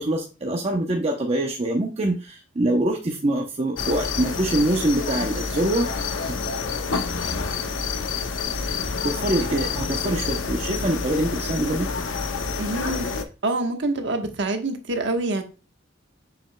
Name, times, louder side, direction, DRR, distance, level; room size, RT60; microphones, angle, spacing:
voice 1, 0.0-5.9 6.2-6.3 9.0-11.9, right 1 dB, 35° right, 0.7 m, -24 dB
sound 1, 3.8-13.2, left 5 dB, 90° left, 0.8 m, -28 dB
voice 2, 12.6-13.1 13.4-15.4, right 2 dB, 65° right, 1.2 m, -26 dB
7.0 x 6.1 x 2.2 m
head